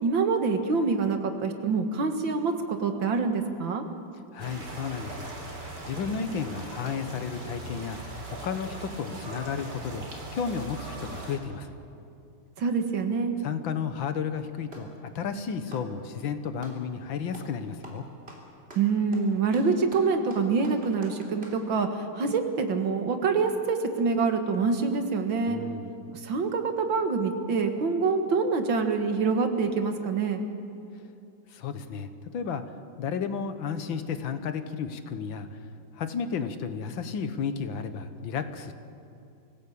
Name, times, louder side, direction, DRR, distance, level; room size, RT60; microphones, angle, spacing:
voice 1, 0.0-3.9 12.6-13.4 18.8-25.6 26.2-30.4, right 4 dB, 75° right, 6 dB, 2.4 m, -26 dB
voice 2, 4.3-5.3 5.8-8.0 8.3-10.0 10.3-11.8 13.4-18.0 25.5-25.9 31.5-32.6 33.0-35.6 35.9-38.7, left 6 dB, 80° left, 10 dB, 1.9 m, -33 dB
sound 1, 4.4-11.4, right 2 dB, 60° right, 4.1 m, -40 dB
Clapping, 14.7-15.0 15.6-16.8 17.3-17.6 17.8-21.6, right 1 dB, 30° right, 3.7 m, -48 dB
24.0 x 16.5 x 8.6 m, 2.6 s
omnidirectional pair, 2.1 m